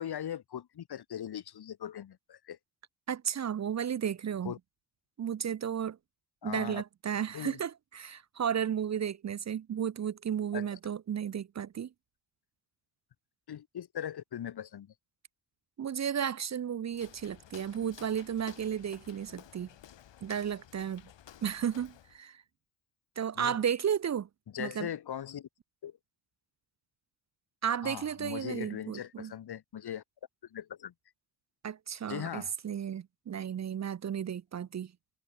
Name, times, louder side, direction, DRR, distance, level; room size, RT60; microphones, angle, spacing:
voice 1, 0.0-2.6 4.4-4.6 6.4-6.8 7.3-7.6 10.5-10.7 13.5-14.9 23.4-23.6 24.5-25.5 25.8-26.0 27.8-30.0 30.5-30.9 32.1-32.5, left 10 dB, 60° left, 1.1 m, -40 dB
voice 2, 3.1-4.5 5.2-6.0 6.4-11.9 15.8-19.7 20.2-21.0 21.4-22.4 23.2-24.3 24.6-24.9 27.6-29.3 31.6-34.9, right 8 dB, 40° right, 0.5 m, -33 dB
Walk footsteps, 16.9-22.2, left 10 dB, 85° left, 3.0 m, -54 dB
cardioid pair, 65°, 43 cm